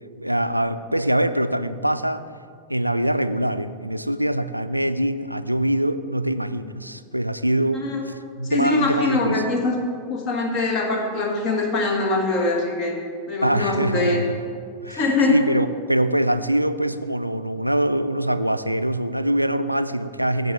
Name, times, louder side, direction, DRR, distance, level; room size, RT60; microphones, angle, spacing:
voice 1, 0.0-2.2 2.7-9.5 13.4-14.4 14.8-20.5, right 1 dB, 90° right, 12 dB, 0.3 m, -23 dB
voice 2, 8.4-9.7 10.1-12.9 13.3-14.2 14.9-15.4, left 2 dB, 35° left, 1 dB, 1.6 m, -23 dB
10.5 x 4.5 x 6.5 m, 2.2 s
figure-of-eight pair, 90°, 0 cm